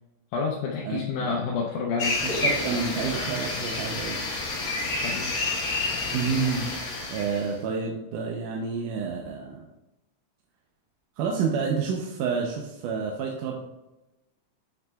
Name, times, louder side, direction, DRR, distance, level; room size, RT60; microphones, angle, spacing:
voice 1, 0.3-2.2 4.9-5.4, left 4 dB, 85° left, -2 dB, 2.2 m, -29 dB
voice 2, 0.9-1.4 2.2-4.2 6.1-6.7 7.1-9.7 11.2-13.6, right 5 dB, 85° right, 0 dB, 2.2 m, -29 dB
sound 1, 2.0-7.5, left 3 dB, 55° left, 1.6 m, -29 dB
7.8 x 6.0 x 2.3 m, 0.96 s
omnidirectional pair, 3.6 m